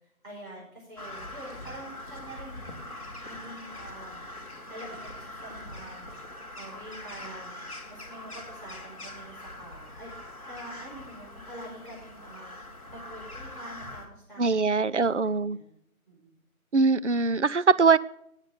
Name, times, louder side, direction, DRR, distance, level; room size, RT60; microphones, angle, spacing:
voice 1, 0.2-2.8 3.2-4.4 4.7-6.1 6.6-7.6 7.9-10.2 10.4-12.5 12.9-15.7 16.1-16.3, right 1 dB, 35° right, -6 dB, 5.5 m, -46 dB
Crow, 1.0-14.1, left 1 dB, 25° left, 1.9 m, -43 dB
voice 2, 14.4-15.6 16.7-18.0, right 4 dB, 55° right, 15 dB, 0.5 m, -22 dB
19.5 x 9.0 x 3.7 m, 0.73 s
figure-of-eight pair, 170°, 43 cm